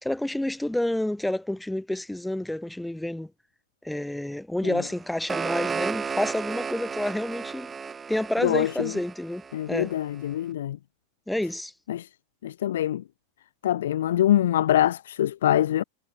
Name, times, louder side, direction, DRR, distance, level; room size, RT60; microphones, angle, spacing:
voice 1, 0.0-3.3 3.8-7.7 8.1-9.9 11.3-11.7, left 1 dB, 5° left, 3.0 m, -29 dB
sound 1, 4.9-9.9, right 5 dB, 15° right, 2.6 m, -33 dB
voice 2, 8.4-8.9 9.5-10.8 11.9-12.1 12.4-13.0 13.6-15.8, left 12 dB, 60° left, 0.7 m, -24 dB
figure-of-eight pair, 90°, 0 cm